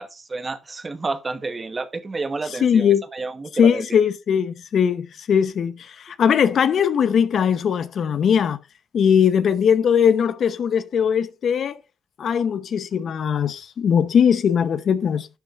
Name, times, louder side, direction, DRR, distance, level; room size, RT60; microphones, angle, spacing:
voice 1, 0.0-3.8, right 3 dB, 30° right, 1.2 m, -30 dB
voice 2, 2.6-3.0 3.6-8.6 8.9-11.8 12.2-15.3, left 7 dB, 60° left, 0.9 m, -20 dB
11.5 x 8.9 x 2.5 m
cardioid pair, 90°, 0 cm